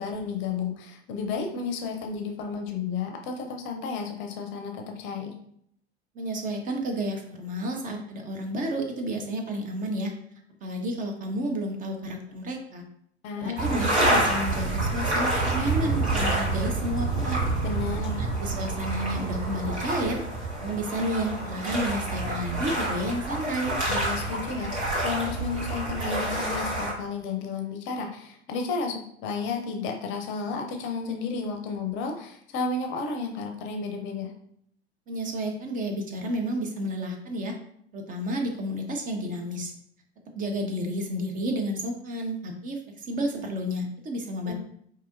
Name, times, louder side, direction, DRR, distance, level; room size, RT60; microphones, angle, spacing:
voice 1, 0.0-5.3 13.2-13.6 17.6-18.2 23.9-34.3 44.4-44.5, left 4 dB, 35° left, 3 dB, 0.6 m, -32 dB
voice 2, 6.1-10.1 10.6-12.8 13.4-17.4 18.2-20.2 20.6-23.8 35.1-37.5 37.9-39.7 40.3-44.5, equal, 25° right, 3 dB, 0.5 m, -31 dB
sound 1, 13.6-26.9, right 2 dB, 75° right, 1.6 m, -28 dB
4.7 x 2.7 x 2.6 m, 0.68 s
figure-of-eight pair, 80°, 33 cm